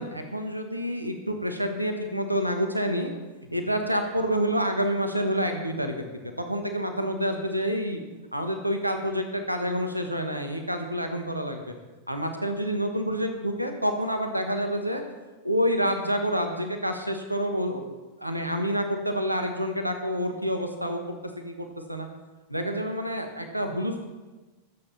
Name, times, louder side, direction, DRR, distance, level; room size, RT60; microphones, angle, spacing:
voice 1, 0.0-3.1 3.5-6.1 6.4-8.0 8.3-11.7 12.1-15.0 15.4-17.8 18.2-22.1 22.5-24.1, equal, 90° right, 6 dB, 1.5 m, -28 dB
20.5 x 7.9 x 4.3 m, 1.2 s
figure-of-eight pair, 90°, 0 cm